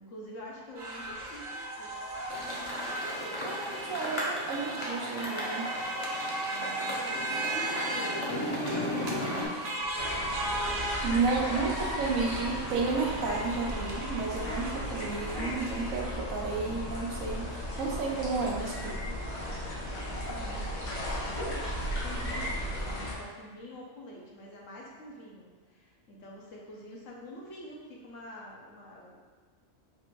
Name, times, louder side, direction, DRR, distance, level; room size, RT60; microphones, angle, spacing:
voice 1, 0.0-2.0 6.5-9.2 19.0-29.2, left 1 dB, 70° left, -3 dB, 1.2 m, -46 dB
sound 1, 0.8-16.0, right 1 dB, 55° right, 0.9 m, -36 dB
sound 2, 2.3-9.5, left 1 dB, 30° left, 0.7 m, -36 dB
voice 2, 3.4-5.7 11.0-19.0, right 4 dB, 85° right, -1 dB, 1.1 m, -32 dB
sound 3, 10.0-23.1, equal, 85° left, 1.5 m, -36 dB
4.2 x 2.6 x 4.5 m, 1.4 s
omnidirectional pair, 1.4 m